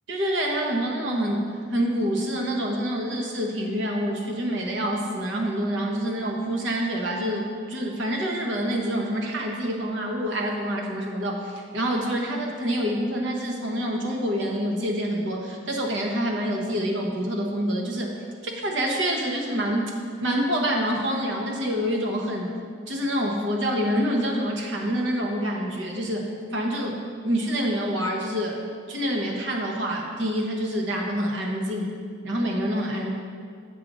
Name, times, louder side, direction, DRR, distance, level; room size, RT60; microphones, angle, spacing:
voice 1, 0.1-1.4 1.7-18.1 18.4-19.9 20.2-22.6 22.9-27.0 27.2-28.6 28.9-31.9 32.2-33.1, equal, 65° right, 0 dB, 1.1 m, -27 dB
7.5 x 3.9 x 6.1 m, 2.2 s
head